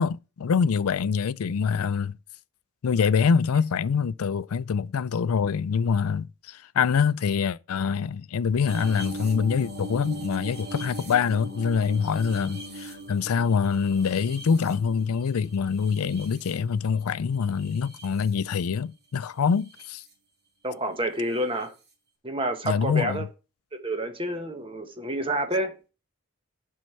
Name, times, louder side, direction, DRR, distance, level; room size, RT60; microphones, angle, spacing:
voice 1, 0.0-2.1 2.8-20.0 22.6-23.2, left 6 dB, 80° left, 0.4 m, -25 dB
sound 1, 8.7-17.0 17.6-18.3 19.5-19.9 21.6-21.7, right 1 dB, 45° right, 3.2 m, -40 dB
voice 2, 20.6-21.7 22.2-23.2 23.7-25.9, right 1 dB, 25° right, 1.3 m, -29 dB
7.7 x 5.4 x 6.7 m
head